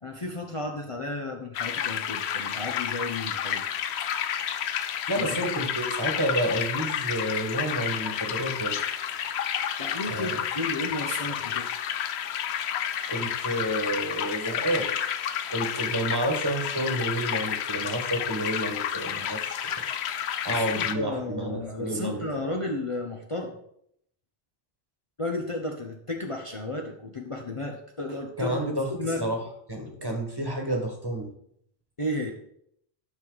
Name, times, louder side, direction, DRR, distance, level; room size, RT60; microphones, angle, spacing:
voice 1, 0.0-3.6 5.2-5.4 9.8-11.8 20.5-23.6 25.2-28.6 28.9-29.3 32.0-32.3, left 1 dB, 35° left, 2 dB, 0.8 m, -33 dB
sound 1, 1.5-20.9, left 9 dB, 80° left, 0.9 m, -30 dB
voice 2, 5.1-8.8 10.1-10.4 13.1-14.9 15.5-19.6 20.4-22.2 28.4-28.9 29.2-29.4 29.7-31.3, right 1 dB, 20° right, 2 dB, 1.6 m, -30 dB
11.5 x 6.2 x 4.0 m, 0.70 s
omnidirectional pair, 1.1 m